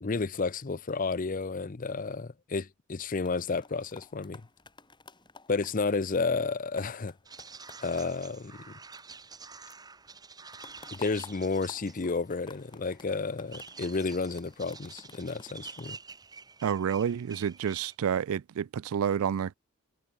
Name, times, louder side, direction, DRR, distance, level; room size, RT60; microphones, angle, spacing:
voice 1, 0.0-4.4 5.5-7.1 7.8-8.6 10.9-16.0, left 4 dB, 35° left, 0.6 m, -31 dB
sound 1, 2.9-9.4 9.7-16.9 17.4-17.7, left 3 dB, 20° left, 6.5 m, -53 dB
sound 2, 7.3-18.0, right 5 dB, 15° right, 1.4 m, -49 dB
voice 2, 16.6-19.5, right 8 dB, 70° right, 0.3 m, -29 dB
head